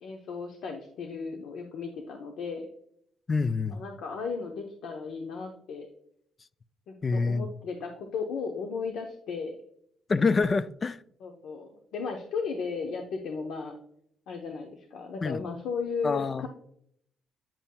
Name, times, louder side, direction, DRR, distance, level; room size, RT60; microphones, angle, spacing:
voice 1, 0.0-2.7 3.7-5.9 6.9-9.6 11.2-13.8 14.3-16.5, left 5 dB, 80° left, 0.8 m, -35 dB
voice 2, 3.3-3.8 7.0-7.5 10.1-11.0 15.2-15.4 16.0-16.5, left 4 dB, 35° left, 0.3 m, -26 dB
8.8 x 5.5 x 2.2 m
cardioid pair, 90°, 0 cm